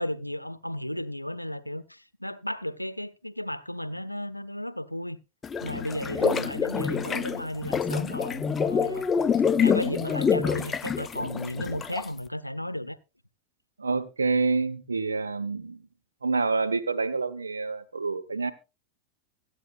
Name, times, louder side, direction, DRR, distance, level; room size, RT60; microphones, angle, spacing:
voice 1, 0.0-5.2 5.6-9.1 9.6-13.0, left 1 dB, 90° left, 0.7 m, -34 dB
sound 1, 5.4-12.2, left 6 dB, 20° left, 0.6 m, -26 dB
voice 2, 6.1-6.5 13.8-15.8 16.2-18.5, right 4 dB, 75° right, 1.1 m, -28 dB
24.5 x 8.4 x 2.5 m
figure-of-eight pair, 90°, 0 cm